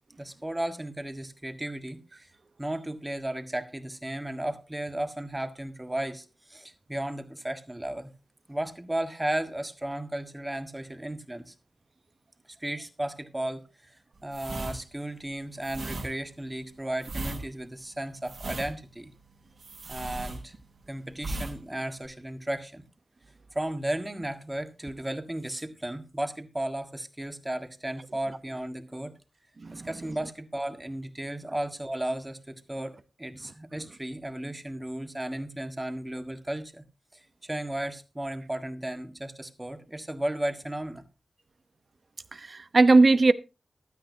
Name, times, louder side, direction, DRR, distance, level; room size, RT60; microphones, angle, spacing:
voice 1, 0.2-2.3 2.6-8.1 8.5-11.5 12.6-14.0 14.2-19.1 19.9-20.5 20.9-22.8 23.5-29.1 29.7-36.8 37.1-41.0, right 1 dB, 15° right, 1.6 m, -34 dB
sound 1, 14.3-20.8 21.2-21.6 21.8-22.1, right 2 dB, 75° right, 5.8 m, -37 dB
voice 2, 29.6-29.9 42.3-43.3, right 3 dB, 45° right, 0.9 m, -19 dB
15.5 x 12.5 x 2.8 m
wide cardioid pair, 120°, 0 cm